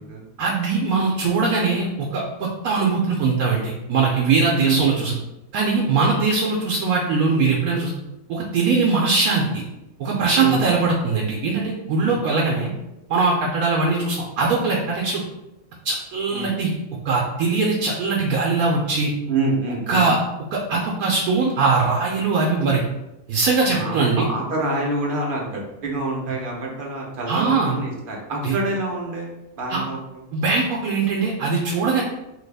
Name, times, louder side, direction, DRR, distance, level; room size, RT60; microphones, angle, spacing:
voice 1, 0.4-5.1 5.5-7.9 8.3-9.6 10.0-12.7 13.1-15.2 15.8-16.7 17.0-19.1 19.9-20.2 20.5-22.8 23.3-24.2 27.3-27.8 28.4-28.5 29.7-29.8 30.3-32.0, right 4 dB, 80° right, -2 dB, 1.0 m, -21 dB
voice 2, 10.4-10.8 12.0-12.2 16.3-16.5 19.3-20.1 23.7-30.2, right 3 dB, 45° right, -2 dB, 0.8 m, -26 dB
3.2 x 2.3 x 3.3 m, 0.94 s
omnidirectional pair, 1.5 m